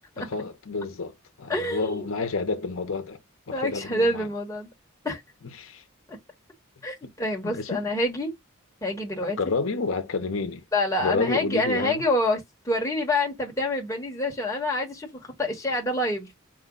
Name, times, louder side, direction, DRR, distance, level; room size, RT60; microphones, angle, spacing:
voice 1, 0.2-3.2 3.5-4.3 5.6-5.8 7.0-7.1 7.4-7.8 9.4-10.6 11.0-12.0, left 4 dB, 75° left, 0.7 m, -29 dB
voice 2, 1.5-2.1 3.5-4.7 5.0-5.2 6.1-6.2 6.8-8.3 8.8-9.5 10.7-16.3, left 1 dB, 15° left, 1.1 m, -27 dB
4.9 x 2.2 x 3.6 m
head